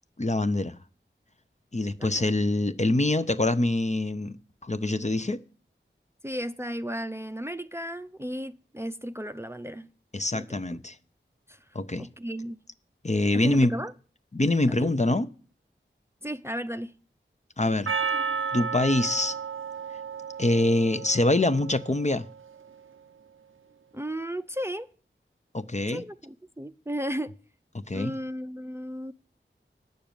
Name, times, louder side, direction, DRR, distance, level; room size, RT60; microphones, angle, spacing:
voice 1, 0.2-0.8 1.7-4.4 4.6-5.4 10.1-10.9 11.7-12.1 13.0-13.7 14.3-15.3 17.6-17.9 18.5-19.4 20.4-22.2 25.5-26.0 27.9-28.1, left 2 dB, 35° left, 0.7 m, -24 dB
voice 2, 2.0-2.3 6.2-9.9 10.3-10.8 11.5-11.6 12.0-12.6 13.3-13.9 14.7-14.9 16.2-16.9 23.9-24.9 25.9-27.3 27.9-29.1, equal, 15° right, 0.6 m, -35 dB
Percussion, 17.9-22.3, right 6 dB, 90° right, 0.6 m, -33 dB
9.2 x 6.7 x 8.8 m
wide cardioid pair, 40°, 20 cm